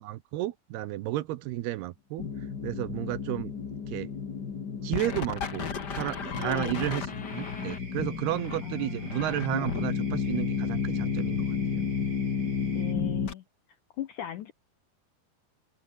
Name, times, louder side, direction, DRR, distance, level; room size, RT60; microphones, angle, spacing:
voice 1, 0.0-2.2 2.6-3.5 3.9-4.1 4.8-11.8, right 15 dB, 75° right, 2.8 m, -32 dB
sound 1, 2.2-13.3, left 6 dB, 40° left, 1.5 m, -32 dB
voice 2, 6.4-6.9 8.6-9.4 12.7-13.4 14.0-14.5, left 11 dB, 70° left, 1.9 m, -38 dB
sound 2, 7.2-12.9, right 3 dB, 25° right, 5.4 m, -49 dB
omnidirectional pair, 4.9 m